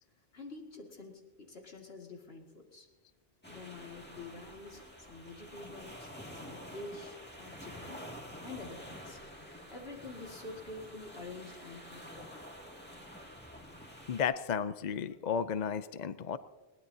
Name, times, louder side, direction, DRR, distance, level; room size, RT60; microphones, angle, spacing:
voice 1, 0.3-2.9 3.5-8.0 8.4-9.2 9.7-12.3, left 3 dB, 70° left, 1 dB, 2.4 m, -47 dB
sound 1, 3.4-14.2, equal, 10° left, 2.4 m, -49 dB
voice 2, 14.1-16.4, left 7 dB, 50° left, 13 dB, 0.6 m, -33 dB
21.0 x 18.0 x 2.8 m, 1.3 s
omnidirectional pair, 1.1 m